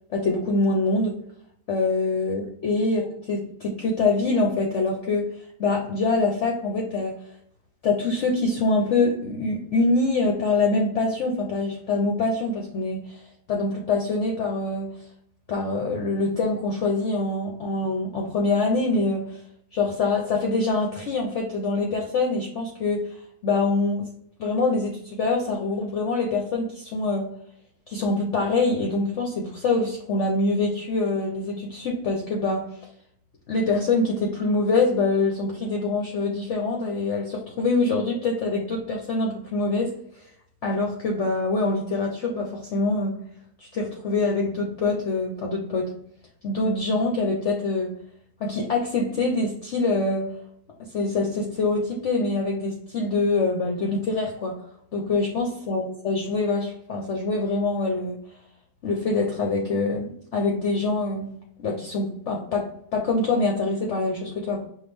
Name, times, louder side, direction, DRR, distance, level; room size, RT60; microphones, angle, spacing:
voice 1, 0.1-1.1 1.7-7.2 7.8-14.9 15.5-19.4 19.7-23.2 23.4-24.1 24.4-27.3 27.9-32.7 33.5-39.9 40.6-43.2 43.6-45.9 46.4-47.9 48.4-50.3 50.9-54.6 54.9-58.2 58.8-61.3 61.6-64.7, left 3 dB, 55° left, 1 dB, 0.9 m, -25 dB
5.5 x 2.5 x 3.3 m, 0.70 s
omnidirectional pair, 1.7 m